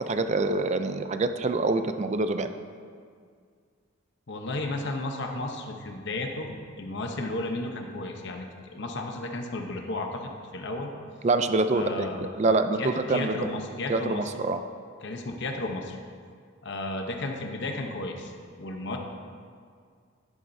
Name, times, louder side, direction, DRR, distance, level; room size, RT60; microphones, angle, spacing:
voice 1, 0.1-2.5 11.2-12.1 12.3-13.4 13.9-14.6, right 3 dB, 35° right, 9 dB, 0.4 m, -25 dB
voice 2, 4.3-8.4 8.7-10.9 11.7-12.3 12.8-14.3 15.0-16.0 16.6-18.3 18.6-19.0, left 2 dB, 55° left, 2 dB, 0.9 m, -33 dB
11.0 x 11.0 x 2.7 m, 2.1 s
head